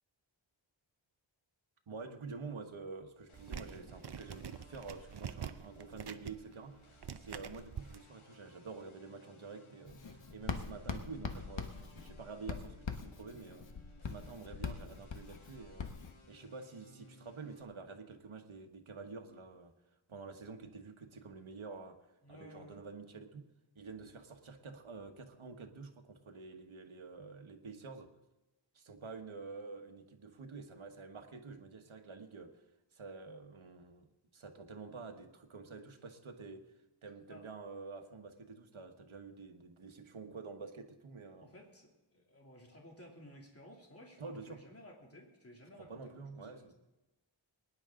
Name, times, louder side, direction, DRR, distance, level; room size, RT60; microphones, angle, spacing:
voice 1, 1.9-13.7 14.1-15.9 16.3-19.7 20.1-22.0 22.3-23.5 23.7-28.1 28.7-32.6 32.9-36.6 37.0-41.5 44.2-44.6 45.8-46.7, right 4 dB, 80° right, 4 dB, 1.5 m, -48 dB
sound 1, 3.3-17.6, left 1 dB, 90° left, 1.7 m, -62 dB
sound 2, 3.3-8.0, right 8 dB, 55° right, 0.7 m, -46 dB
Writing, 9.9-16.1, left 5 dB, 65° left, 1.3 m, -43 dB
voice 2, 22.2-22.8 37.3-37.4 41.4-46.7, left 1 dB, 30° left, -1 dB, 2.9 m, -56 dB
22.5 x 10.5 x 3.8 m, 1.0 s
wide cardioid pair, 90°, 47 cm